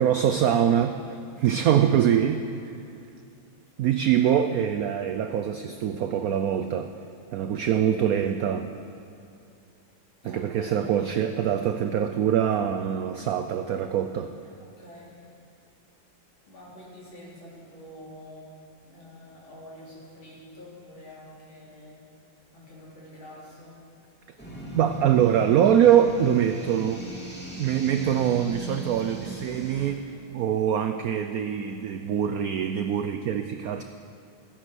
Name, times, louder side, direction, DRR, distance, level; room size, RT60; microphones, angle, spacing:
voice 1, 0.0-2.4 3.8-6.9 7.3-8.7 10.2-14.3 24.7-27.0 27.6-30.0 30.3-33.8, right 9 dB, 85° right, 7 dB, 0.7 m, -23 dB
voice 2, 1.3-1.6 10.2-11.4 14.6-15.3 16.5-18.5 18.9-22.0 22.5-23.8 30.0-30.3, left 1 dB, 85° left, -6 dB, 4.2 m, -47 dB
sound 1, 24.4-29.9, equal, 5° left, 2.1 m, -39 dB
14.5 x 10.0 x 6.3 m, 2.5 s
omnidirectional pair, 2.1 m